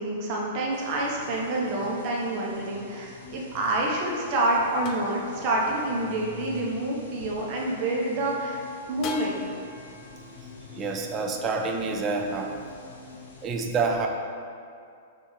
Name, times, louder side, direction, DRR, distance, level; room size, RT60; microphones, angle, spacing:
voice 1, 0.0-8.6 8.9-9.4, right 1 dB, 45° right, -3 dB, 0.9 m, -27 dB
sound 1, 0.7-13.5, left 3 dB, 75° left, 0.8 m, -47 dB
sound 2, 2.7-8.0 9.0-12.4, left 3 dB, 40° left, 0.4 m, -44 dB
voice 2, 10.7-12.5 13.4-14.1, right 4 dB, 30° right, 3 dB, 0.5 m, -27 dB
5.4 x 2.7 x 3.2 m, 2.3 s
hypercardioid pair, 115°, 0 cm